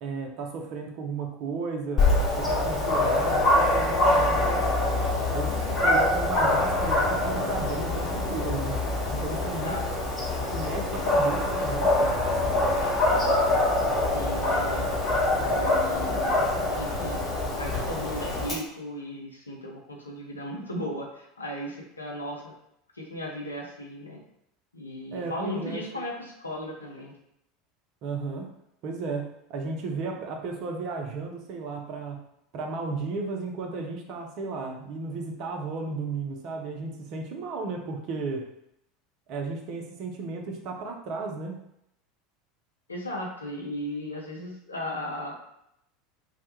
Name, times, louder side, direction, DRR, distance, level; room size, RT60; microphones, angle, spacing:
voice 1, 0.0-4.7 5.3-8.8 9.1-9.8 10.5-12.3 25.1-25.8 28.0-28.5 28.8-32.2 32.5-38.5 39.3-41.6, right 3 dB, 45° right, 2 dB, 0.4 m, -34 dB
Dog, 2.0-18.5, left 2 dB, 30° left, 1.0 m, -25 dB
voice 2, 9.5-9.8 14.1-14.9 15.5-22.5 22.9-24.2 24.7-27.1 42.9-45.3, left 1 dB, 80° left, -1 dB, 0.5 m, -36 dB
2.1 x 2.0 x 2.8 m, 0.78 s
figure-of-eight pair, 75°, 0 cm